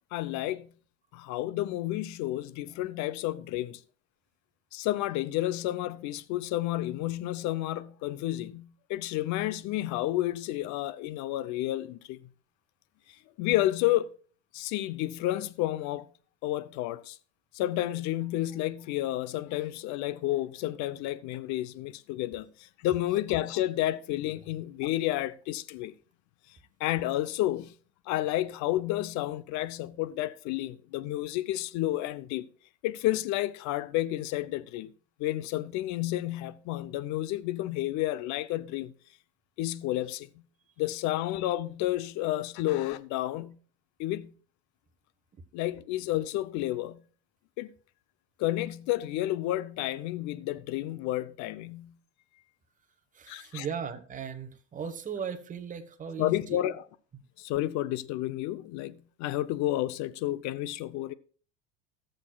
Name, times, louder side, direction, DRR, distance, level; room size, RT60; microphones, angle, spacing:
voice 1, 0.1-0.7 1.1-3.8 4.7-12.2 13.4-14.1 14.5-16.1 16.4-17.2 17.5-25.9 26.8-27.7 28.1-32.5 32.8-34.9 35.2-38.9 39.6-40.4 40.8-43.6 44.0-44.4 45.5-47.0 47.6-47.7 48.4-52.0 53.3-53.7 56.2-56.9 57.4-61.1, left 15 dB, 55° left, 0.7 m, -31 dB
voice 2, 53.1-56.4, right 7 dB, 20° right, 1.2 m, -37 dB
18.5 x 6.5 x 2.3 m
supercardioid pair, 110°, 35 cm